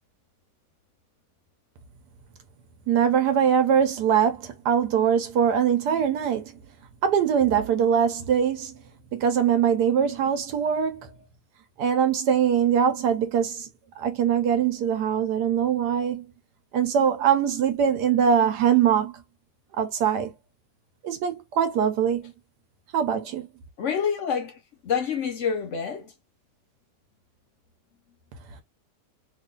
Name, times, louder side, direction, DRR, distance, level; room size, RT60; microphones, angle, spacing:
voice 1, 2.9-6.5 7.0-8.7 9.1-11.1 11.8-13.7 14.0-16.2 16.7-19.1 19.8-20.3 21.0-22.3 22.9-23.5, right 8 dB, 75° right, 1.3 m, -22 dB
voice 2, 23.8-26.1, left 7 dB, 60° left, 0.8 m, -27 dB
3.0 x 2.5 x 3.7 m
omnidirectional pair, 1.8 m